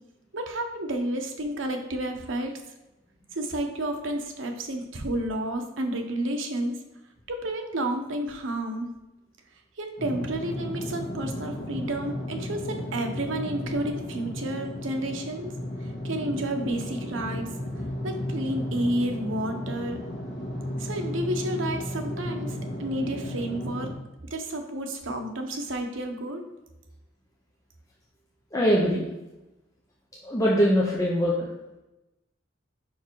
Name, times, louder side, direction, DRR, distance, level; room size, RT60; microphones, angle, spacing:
voice 1, 0.3-2.5 3.3-6.8 7.3-8.9 9.8-15.5 16.0-17.5 18.0-20.0 20.8-23.9 24.3-26.4, right 1 dB, 80° right, 4 dB, 0.9 m, -31 dB
sound 1, 10.0-23.9, left 1 dB, 60° left, 1.6 m, -34 dB
voice 2, 28.5-29.1 30.2-31.5, equal, 15° left, -5 dB, 0.8 m, -22 dB
5.5 x 4.7 x 4.6 m, 0.99 s
head